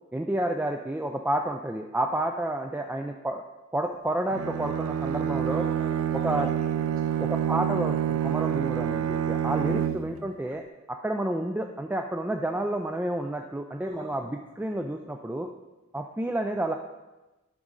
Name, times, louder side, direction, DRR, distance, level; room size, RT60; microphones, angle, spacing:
voice 1, 0.1-3.4 3.7-5.8 6.1-6.5 7.2-10.6 10.9-15.5 15.9-16.8, right 1 dB, 10° right, 4 dB, 0.3 m, -30 dB
Bowed string instrument, 4.3-10.3, right 9 dB, 85° right, 0.3 m, -27 dB
voice 2, 5.5-7.5 9.7-10.1 13.7-14.3, right 1 dB, 40° right, -7 dB, 3.2 m, -44 dB
11.0 x 6.0 x 3.9 m, 1.1 s
head